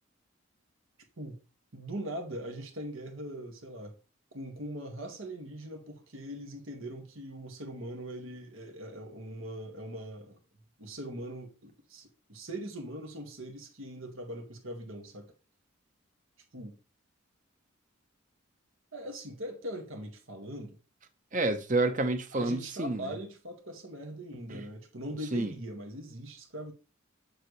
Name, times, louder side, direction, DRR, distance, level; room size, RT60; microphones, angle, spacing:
voice 1, 1.7-3.9 4.3-10.4 10.8-15.3 16.5-16.8 18.9-20.8 22.3-26.7, right 1 dB, 80° right, 1.9 m, -41 dB
voice 2, 21.3-23.1 24.5-24.6 25.3-25.5, right 2 dB, 40° right, 0.9 m, -29 dB
7.4 x 6.9 x 3.2 m
head